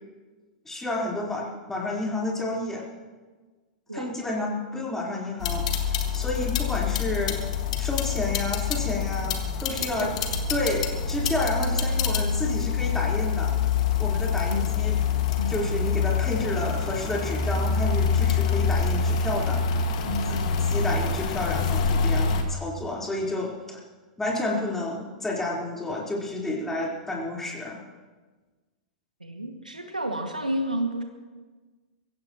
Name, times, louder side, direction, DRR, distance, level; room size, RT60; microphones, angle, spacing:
voice 1, 0.6-2.9 3.9-7.4 7.8-10.1 10.5-13.5 14.0-15.0 15.5-19.6 20.6-23.8 24.2-27.8, left 2 dB, 10° left, -4 dB, 4.2 m, -30 dB
sound 1, 5.4-22.4, left 5 dB, 55° left, 1.9 m, -26 dB
voice 2, 9.7-10.2 11.8-12.1 14.5-14.8 15.4-15.7 18.1-18.4 20.0-20.8 29.2-31.0, right 1 dB, 90° right, 3 dB, 2.1 m, -32 dB
23.5 x 16.0 x 3.1 m, 1.3 s
figure-of-eight pair, 100°, 4 cm